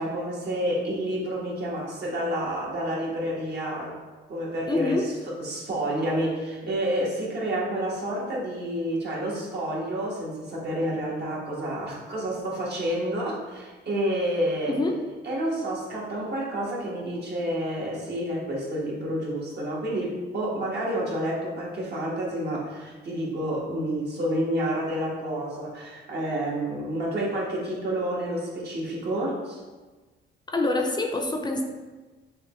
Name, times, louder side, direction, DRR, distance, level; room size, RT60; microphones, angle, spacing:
voice 1, 0.0-4.0 4.3-14.8 15.2-29.6, right 1 dB, 55° right, -4 dB, 1.4 m, -29 dB
voice 2, 4.7-5.1 14.7-15.0 30.5-31.6, left 2 dB, 20° left, 2 dB, 0.5 m, -25 dB
6.4 x 2.3 x 3.0 m, 1.3 s
cardioid pair, 90°, 20 cm